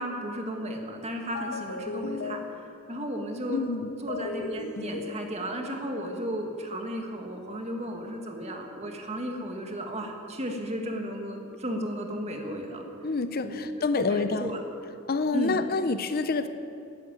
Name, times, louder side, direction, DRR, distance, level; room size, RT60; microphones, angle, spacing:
voice 1, 0.0-2.4 2.9-3.6 4.0-12.9 13.4-14.6 15.3-15.6, equal, 30° right, 2 dB, 1.9 m, -34 dB
sound 1, 1.3-3.1 4.1-5.8, left 3 dB, 90° left, 1.4 m, -37 dB
voice 2, 3.5-3.9 13.0-14.5 15.1-16.5, left 3 dB, 45° left, 10 dB, 0.6 m, -27 dB
13.0 x 11.0 x 9.0 m, 2.6 s
head